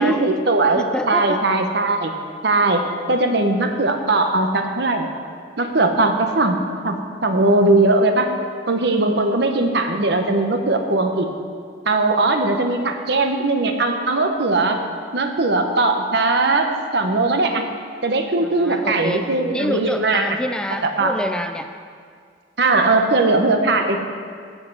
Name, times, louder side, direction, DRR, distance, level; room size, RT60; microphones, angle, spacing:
voice 1, 0.0-2.1 2.4-5.1 5.6-6.6 6.8-7.0 7.2-8.3 8.7-11.3 11.9-14.8 15.1-17.6 18.0-20.2 20.8-21.2 22.6-24.1, right 2 dB, 65° right, 5 dB, 1.0 m, -19 dB
voice 2, 0.9-1.4 18.4-21.7, equal, 5° left, 7 dB, 0.3 m, -27 dB
15.5 x 5.4 x 6.1 m, 2.1 s
head